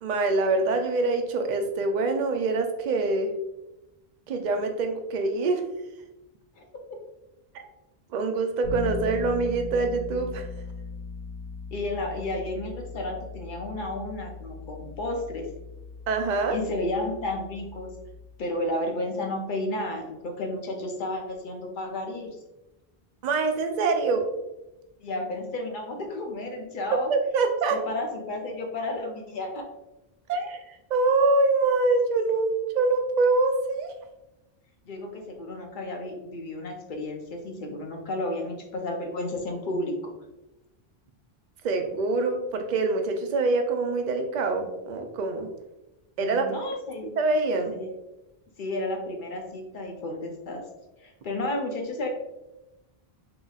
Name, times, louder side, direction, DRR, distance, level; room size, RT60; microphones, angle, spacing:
voice 1, 0.0-3.3 4.3-5.6 7.5-7.7 8.1-10.4 16.1-16.6 23.2-24.3 27.1-27.8 30.3-33.9 41.6-45.5 46.2-46.4 47.2-47.7, right 3 dB, 55° right, 5 dB, 0.5 m, -25 dB
Bass guitar, 8.6-18.5, left 3 dB, 80° left, 1.2 m, -39 dB
voice 2, 11.7-15.5 16.5-17.9 18.4-22.4 25.0-27.1 27.7-29.6 34.9-40.1 46.2-47.2 47.7-47.9 48.6-50.6 51.0-52.1, left 2 dB, 60° left, 2 dB, 0.7 m, -32 dB
3.9 x 2.8 x 2.3 m, 0.97 s
omnidirectional pair, 1.1 m